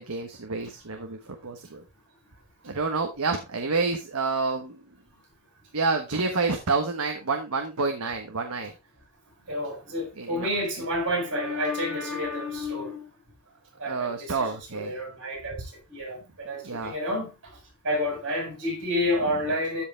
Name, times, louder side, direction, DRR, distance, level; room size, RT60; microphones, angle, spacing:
voice 1, 0.0-1.8 2.6-4.9 5.7-8.7 10.1-10.5 13.8-15.0 16.6-16.9, right 4 dB, 75° right, 1.3 m, -29 dB
voice 2, 9.5-13.1 13.8-17.5 17.8-19.8, left 1 dB, 55° right, 6.2 m, -30 dB
13.0 x 4.8 x 3.4 m
head